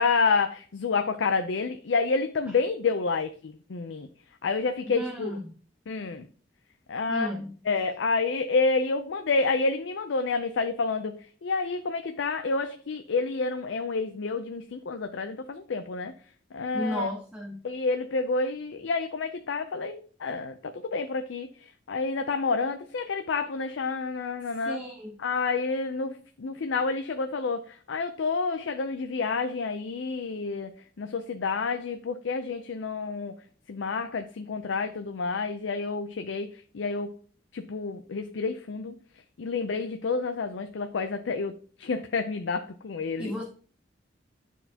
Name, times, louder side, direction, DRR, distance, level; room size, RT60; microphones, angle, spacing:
voice 1, 0.0-4.1 4.4-5.3 5.9-6.3 6.9-7.3 7.7-16.1 16.5-17.1 17.6-24.8 25.2-30.7 31.0-33.3 33.7-37.1 37.5-38.9 39.4-41.5 41.8-43.3, left 4 dB, 80° left, 0.5 m, -29 dB
voice 2, 4.9-5.5 7.1-7.6 16.7-17.6 24.7-25.2 43.2-43.4, equal, 10° right, 0.9 m, -34 dB
10.0 x 4.5 x 2.8 m
head